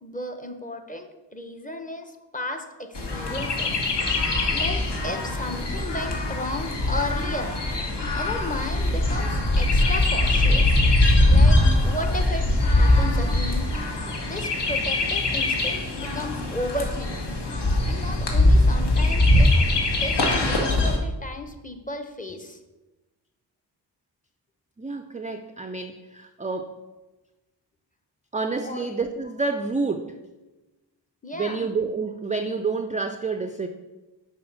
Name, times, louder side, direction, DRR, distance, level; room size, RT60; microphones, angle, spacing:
voice 1, 0.0-3.8 4.5-7.6 8.1-10.8 11.3-13.6 14.2-17.4 17.8-19.5 20.0-22.6 28.6-28.9 31.2-31.7, left 1 dB, 15° left, 6 dB, 0.9 m, -34 dB
Chirp tweet, 2.9-21.0, left 1 dB, 60° left, 1.5 m, -22 dB
voice 2, 24.8-26.7 28.3-30.2 31.3-33.7, right 4 dB, 15° right, 7 dB, 0.4 m, -29 dB
6.2 x 4.1 x 5.9 m, 1.1 s
cardioid pair, 55°, 46 cm